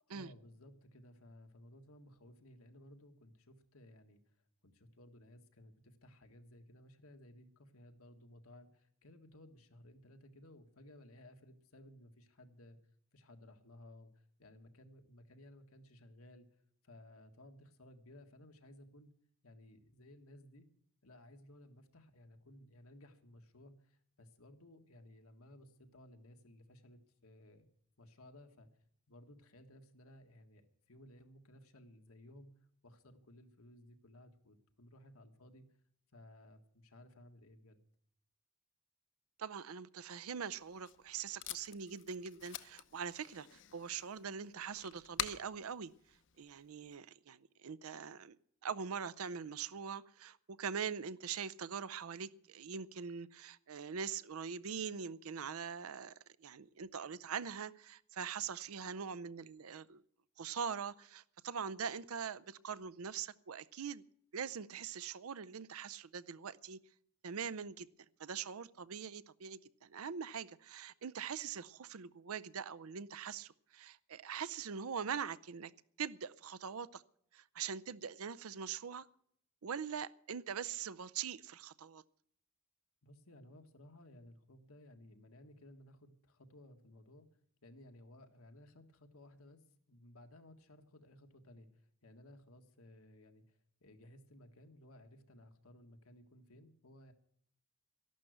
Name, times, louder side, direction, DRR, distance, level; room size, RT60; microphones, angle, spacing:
voice 1, 0.1-4.2 4.6-12.8 13.1-19.1 19.4-20.7 21.0-27.7 28.0-28.7 29.1-32.5 32.8-35.7 36.1-37.8 83.0-87.3 87.6-89.6 89.9-97.1, left 1 dB, 85° left, 6 dB, 1.7 m, -58 dB
voice 2, 39.4-45.9 46.4-48.4 48.6-56.1 56.4-60.0 60.4-64.0 64.3-66.8 67.2-67.9 68.2-75.7 76.0-77.0 77.3-79.1 79.6-82.0, right 7 dB, 85° right, 18 dB, 0.6 m, -43 dB
Packing tape duct tape, 40.5-47.0, left 10 dB, 60° left, 0.8 m, -48 dB
13.0 x 11.5 x 7.9 m, 0.66 s
head